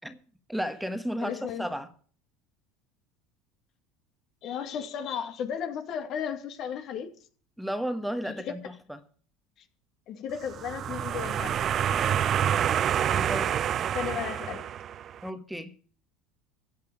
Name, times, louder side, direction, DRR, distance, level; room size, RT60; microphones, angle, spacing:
voice 1, 0.5-1.9 7.6-8.6 13.1-13.5 15.2-15.7, equal, ahead, 1.4 m, -33 dB
voice 2, 1.2-1.7 4.4-7.1 8.2-8.5 10.1-11.7 13.9-14.7, left 8 dB, 55° left, 2.3 m, -34 dB
sound 1, 10.5-15.2, right 9 dB, 45° right, 0.4 m, -27 dB
14.5 x 8.3 x 5.1 m
hypercardioid pair, 80°, 0 cm